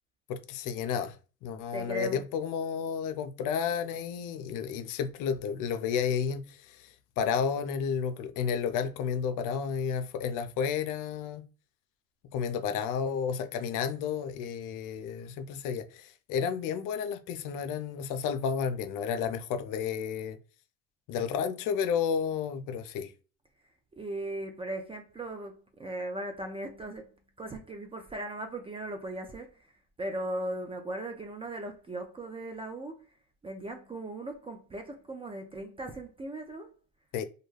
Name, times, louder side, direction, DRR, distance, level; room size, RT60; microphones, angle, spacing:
voice 1, 0.3-1.2 1.4-11.5 12.3-20.4 21.1-23.1 37.1-37.2, left 7 dB, 50° left, 0.5 m, -32 dB
voice 2, 1.7-2.2 24.0-27.1 27.4-29.5 30.0-33.0 33.4-36.7, right 1 dB, 15° right, 0.3 m, -38 dB
2.3 x 2.1 x 3.2 m
supercardioid pair, 90°, 41 cm